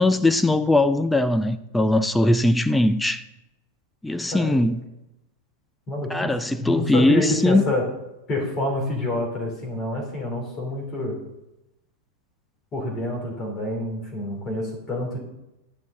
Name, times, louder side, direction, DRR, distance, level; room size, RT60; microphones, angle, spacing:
voice 1, 0.0-3.2 4.0-4.8 6.1-7.6, left 2 dB, 5° left, 0.4 m, -20 dB
voice 2, 5.9-6.3 6.6-7.8 8.3-11.2 12.7-15.2, left 1 dB, 30° left, 3.2 m, -27 dB
11.5 x 10.5 x 3.8 m
figure-of-eight pair, 90°, 0 cm